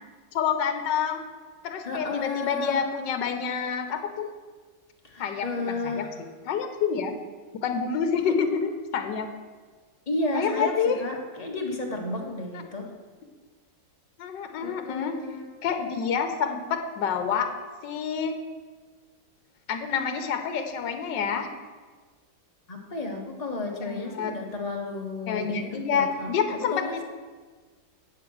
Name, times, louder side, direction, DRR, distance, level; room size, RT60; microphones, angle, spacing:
voice 1, 0.3-1.2 1.6-4.3 5.2-6.1 6.5-7.1 7.6-9.3 10.3-11.0 12.5-12.6 14.2-15.1 15.6-17.5 17.8-18.3 19.7-21.5 23.8-24.3 25.3-27.0, left 6 dB, 75° left, 7 dB, 1.5 m, -28 dB
voice 2, 1.8-2.8 5.0-6.1 8.1-8.3 10.1-12.9 14.6-15.4 22.7-26.3 26.7-27.0, left 2 dB, 25° left, 0 dB, 1.3 m, -32 dB
8.3 x 7.6 x 6.1 m, 1.4 s
omnidirectional pair, 2.0 m